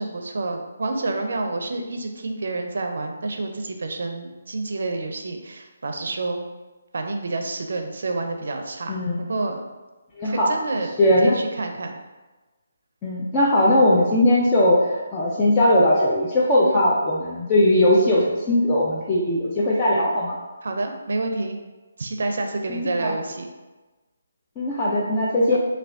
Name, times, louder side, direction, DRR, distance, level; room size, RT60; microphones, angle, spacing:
voice 1, 0.0-6.5 6.9-9.7 10.2-10.9 11.2-12.0 16.6-16.8 20.6-21.6 22.0-23.5, right 2 dB, 65° right, 4 dB, 0.5 m, -28 dB
voice 2, 8.9-9.3 10.1-10.5 11.0-11.4 13.0-20.4 22.7-23.1 24.6-25.6, left 1 dB, 20° left, -6 dB, 0.4 m, -19 dB
3.4 x 2.3 x 3.5 m, 1.2 s
figure-of-eight pair, 155°, 0 cm